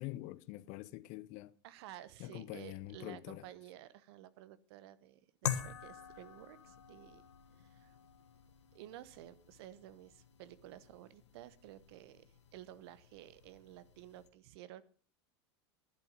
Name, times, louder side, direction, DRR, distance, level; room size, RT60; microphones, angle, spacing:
voice 1, 0.0-1.5 2.2-3.4, left 17 dB, 55° left, 0.8 m, -45 dB
voice 2, 1.6-7.2 7.6-8.0 8.7-14.8, right 13 dB, 70° right, 1.1 m, -53 dB
sound 1, 5.4-14.3, left 9 dB, 85° left, 1.5 m, -46 dB
11.5 x 11.0 x 5.2 m
hypercardioid pair, 95°, 14 cm